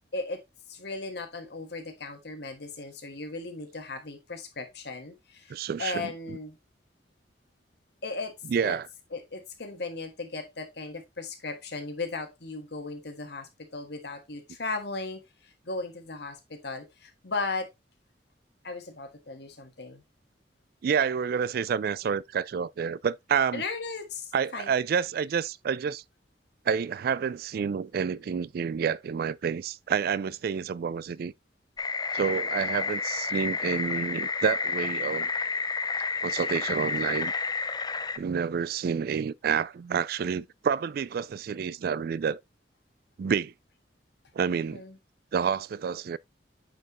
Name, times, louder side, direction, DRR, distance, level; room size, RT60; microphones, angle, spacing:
voice 1, 0.1-6.6 8.0-8.3 8.6-8.8 9.1-17.7 18.6-20.0 23.5-24.7 44.7-45.0, left 3 dB, 65° left, 1.6 m, -37 dB
voice 2, 5.5-6.1 8.5-8.9 20.8-23.6 24.3-26.0 26.7-31.3 32.1-35.3 36.2-37.3 38.2-42.4 43.2-43.5 44.3-44.8 45.3-46.2, right 6 dB, 55° right, 0.3 m, -29 dB
sound 1, 31.8-38.2, left 4 dB, 25° left, 0.5 m, -30 dB
9.0 x 4.4 x 3.0 m
head